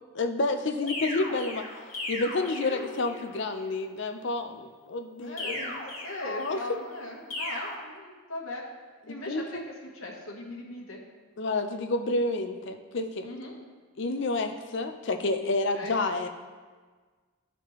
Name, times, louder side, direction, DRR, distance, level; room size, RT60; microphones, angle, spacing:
voice 1, 0.1-1.7 2.1-5.7 6.2-6.6 9.1-9.6 11.4-13.3 14.0-16.3, left 2 dB, 55° left, 7 dB, 0.5 m, -29 dB
sound 1, 0.9-3.3 5.4-6.7 7.3-7.7, left 1 dB, 30° left, 1.3 m, -37 dB
voice 2, 2.6-3.1 5.2-8.6 9.1-9.6 9.9-11.0 13.2-13.6 15.7-16.0, left 2 dB, 80° left, -1 dB, 1.3 m, -39 dB
12.0 x 4.2 x 3.1 m, 1.4 s
head